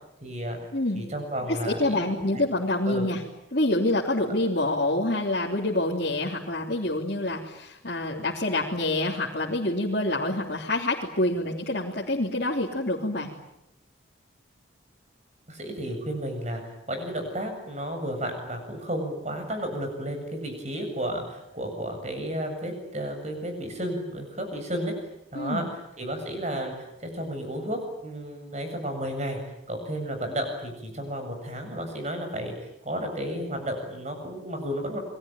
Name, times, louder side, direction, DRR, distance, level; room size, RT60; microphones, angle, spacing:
voice 1, 0.2-0.6 0.9-2.5 2.9-3.1 15.5-24.9 25.3-29.4 29.7-35.0, equal, 35° right, 5 dB, 7.5 m, -32 dB
voice 2, 0.7-1.0 1.5-3.2 3.5-13.3 25.3-25.7, left 1 dB, 50° left, -4 dB, 3.3 m, -27 dB
29.0 x 22.5 x 9.1 m, 0.84 s
head